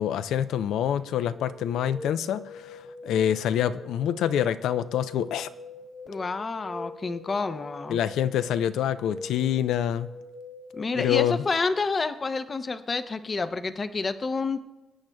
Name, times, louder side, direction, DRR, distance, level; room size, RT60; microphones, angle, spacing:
voice 1, 0.0-5.5 7.9-10.1 11.0-11.4, left 10 dB, 80° left, 13 dB, 0.5 m, -26 dB
sound 1, 1.3-10.8, left 2 dB, 65° left, 2.7 m, -43 dB
voice 2, 6.1-8.0 10.7-14.6, left 4 dB, 35° left, 10 dB, 0.6 m, -29 dB
23.5 x 8.8 x 2.3 m, 1.0 s
cardioid pair, 90°, 0 cm